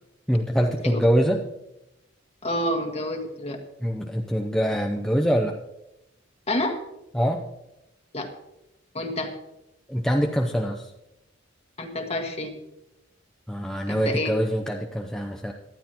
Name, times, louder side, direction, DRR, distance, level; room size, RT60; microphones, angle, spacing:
voice 1, 0.3-1.4 3.8-5.6 7.1-7.4 9.9-10.9 13.5-15.5, equal, 5° left, 1 dB, 0.7 m, -24 dB
voice 2, 2.4-3.6 6.5-6.8 8.1-8.3 8.9-9.3 11.8-12.6 13.9-14.3, left 1 dB, 30° left, 4 dB, 1.7 m, -28 dB
18.5 x 12.0 x 3.0 m, 0.90 s
head